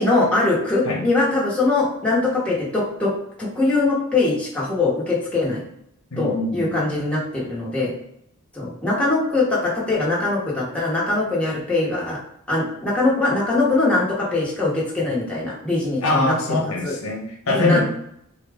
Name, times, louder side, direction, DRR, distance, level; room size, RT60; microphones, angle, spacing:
voice 1, 0.0-3.1 3.4-5.6 6.2-7.9 8.5-12.2 12.5-16.3 16.8-16.9 17.5-17.8, left 2 dB, 5° left, -6 dB, 1.1 m, -22 dB
voice 2, 6.1-6.8 16.0-17.8, left 2 dB, 75° left, 0 dB, 0.9 m, -23 dB
4.3 x 2.4 x 3.4 m, 0.74 s
head